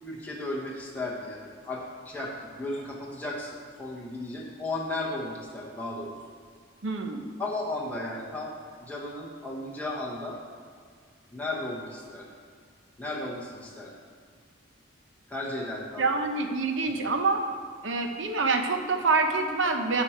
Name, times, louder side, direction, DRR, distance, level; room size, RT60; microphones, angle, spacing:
voice 1, 0.0-6.1 7.4-8.5 8.8-10.4 11.3-12.3 13.0-13.9 15.3-16.1, left 2 dB, 10° left, -4 dB, 0.9 m, -35 dB
voice 2, 6.8-7.3 16.0-17.4 17.8-20.0, right 3 dB, 75° right, 5 dB, 0.8 m, -26 dB
11.5 x 4.9 x 4.4 m, 2.1 s
head